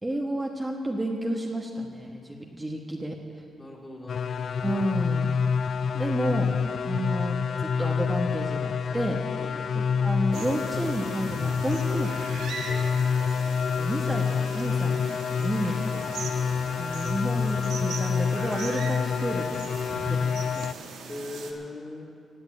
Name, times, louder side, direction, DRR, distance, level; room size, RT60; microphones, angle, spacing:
voice 1, 0.0-3.2 4.6-5.4 5.9-6.5 6.9-9.2 9.7-12.4 13.7-15.0 15.3-15.8 16.8-20.7, right 1 dB, 15° right, 0 dB, 1.3 m, -31 dB
voice 2, 3.6-4.6 9.4-9.7 12.7-12.9 15.9-16.1 21.1-22.2, left 2 dB, 25° left, -2 dB, 3.1 m, -40 dB
sound 1, 4.1-20.7, left 6 dB, 60° left, 0.4 m, -27 dB
sound 2, 10.3-21.5, right 4 dB, 85° right, 1.6 m, -40 dB
16.5 x 7.9 x 8.5 m, 2.5 s
cardioid pair, 80°, 0 cm